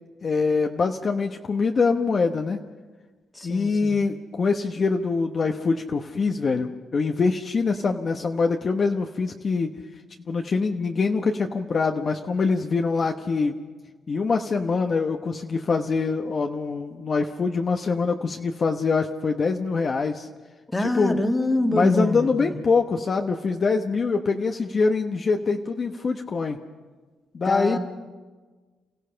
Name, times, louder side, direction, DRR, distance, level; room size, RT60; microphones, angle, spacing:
voice 1, 0.2-2.6 3.4-9.7 10.3-13.6 14.1-20.3 20.8-21.2 21.7-26.6 27.3-27.8, left 4 dB, 40° left, 4 dB, 1.0 m, -24 dB
voice 2, 3.3-4.0 20.7-22.6 27.5-27.8, left 1 dB, 15° left, 5 dB, 1.8 m, -25 dB
29.0 x 15.5 x 5.7 m, 1.4 s
cardioid pair, 90°, 0 cm